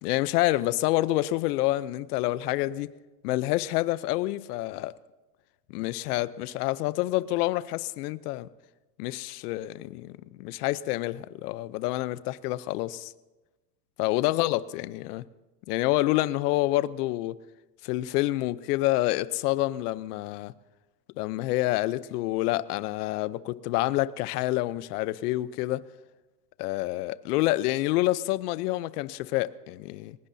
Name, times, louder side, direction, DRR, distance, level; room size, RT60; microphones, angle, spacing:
voice 1, 0.0-2.9 3.2-4.9 5.7-8.5 9.0-13.1 14.0-15.2 15.7-17.4 17.8-20.5 21.2-25.8 26.6-30.2, left 17 dB, 70° left, 0.8 m, -28 dB
22.5 x 19.5 x 2.8 m
supercardioid pair, 125°, 49 cm